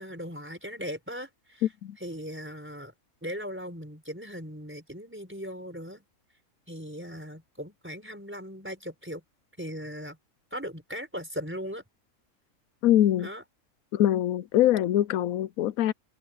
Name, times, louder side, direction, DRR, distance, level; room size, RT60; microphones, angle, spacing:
voice 1, 0.0-1.7 2.0-2.9 3.2-6.1 6.7-9.2 9.6-10.2 10.5-11.8 13.2-13.4, equal, 10° right, 4.8 m, -38 dB
voice 2, 12.8-13.3 13.9-15.9, left 12 dB, 85° left, 1.0 m, -23 dB
omnidirectional pair, 1.4 m